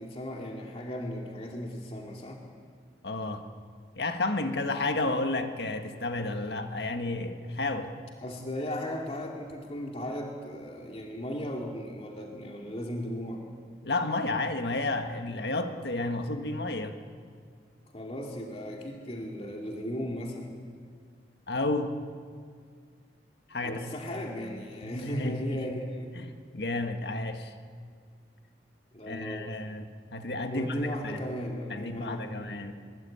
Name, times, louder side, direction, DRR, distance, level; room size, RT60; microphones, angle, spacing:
voice 1, 0.0-2.4 8.2-13.4 17.9-20.5 23.6-26.1 28.9-29.6 30.5-32.6, equal, 35° left, 0 dB, 2.5 m, -36 dB
voice 2, 3.0-3.4 3.9-7.9 13.8-16.9 21.5-22.0 23.5-23.9 24.8-25.7 26.1-26.3 26.5-27.5 29.0-30.8 31.0-31.2 31.7-32.7, left 2 dB, 70° left, 6 dB, 1.7 m, -31 dB
22.5 x 22.0 x 8.8 m, 2.1 s
head